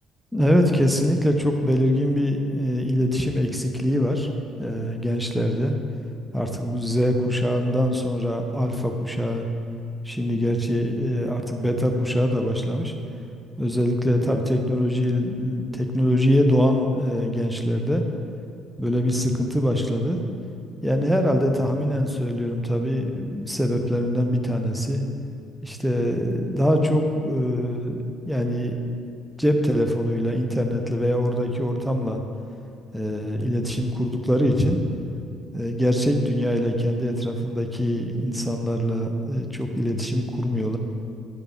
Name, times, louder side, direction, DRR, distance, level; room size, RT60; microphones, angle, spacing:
voice 1, 0.3-4.3 4.6-5.7 6.3-9.5 10.0-12.9 13.6-18.0 18.8-20.2 20.8-25.0 25.6-28.0 28.3-28.7 29.4-32.2 32.9-34.8 35.5-40.8, equal, ahead, 4 dB, 0.9 m, -23 dB
10.5 x 5.1 x 4.5 m, 2.5 s
figure-of-eight pair, 50°, 0 cm